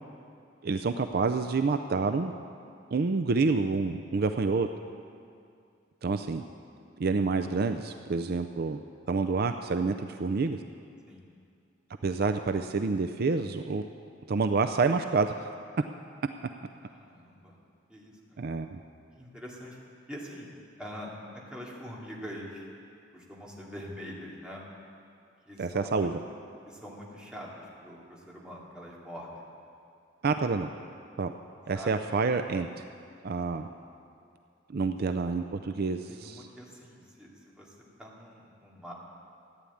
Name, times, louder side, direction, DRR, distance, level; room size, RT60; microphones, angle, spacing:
voice 1, 0.6-2.3 2.9-4.7 6.0-6.4 7.0-8.8 9.1-10.6 12.0-13.8 14.3-15.5 18.4-18.8 25.6-26.2 30.2-30.7 31.2-31.3 31.7-32.8 33.2-33.7 34.7-36.5, right 4 dB, 55° right, 8 dB, 0.5 m, -28 dB
voice 2, 4.1-4.6 11.1-11.2 16.8-17.6 17.9-18.4 19.2-19.8 20.1-20.5 20.8-22.7 23.1-24.6 25.5-26.1 26.7-29.4 31.7-31.9 34.9-35.0 36.1-37.3 37.5-38.9, equal, 5° right, -5 dB, 2.5 m, -44 dB
15.0 x 9.8 x 8.6 m, 2.4 s
head